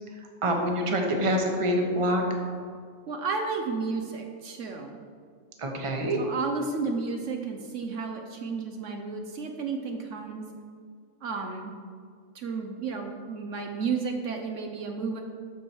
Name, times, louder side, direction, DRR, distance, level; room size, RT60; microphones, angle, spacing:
voice 1, 0.4-2.2 5.6-6.2, equal, 25° right, 2 dB, 1.0 m, -26 dB
voice 2, 3.1-5.0 6.1-10.5 11.2-11.7 12.3-15.2, right 4 dB, 70° right, 3 dB, 1.0 m, -32 dB
13.0 x 4.7 x 4.5 m, 2.1 s
omnidirectional pair, 1.4 m